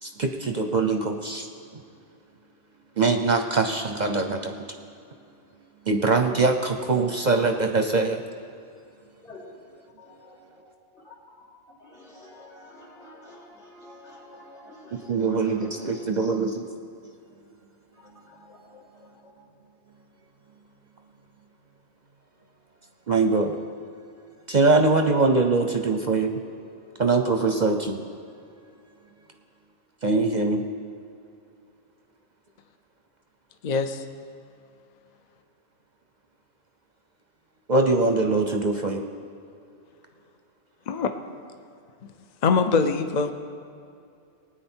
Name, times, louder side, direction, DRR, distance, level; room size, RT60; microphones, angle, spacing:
voice 1, 0.0-1.5 1.7-1.8 3.0-4.6 5.9-8.2 15.1-16.6 23.1-23.6 24.5-26.3 27.0-28.0 30.0-30.6 37.7-39.1, right 3 dB, 45° right, 5 dB, 0.7 m, -22 dB
voice 2, 10.0-10.7 10.9-11.1 11.7-16.0 17.9-19.3, left 2 dB, 70° left, -5 dB, 3.5 m, -49 dB
voice 3, 33.6-34.0 40.9-41.1 42.4-43.3, left 5 dB, 50° left, 7 dB, 0.6 m, -23 dB
19.5 x 9.0 x 4.4 m, 2.5 s
omnidirectional pair, 1.2 m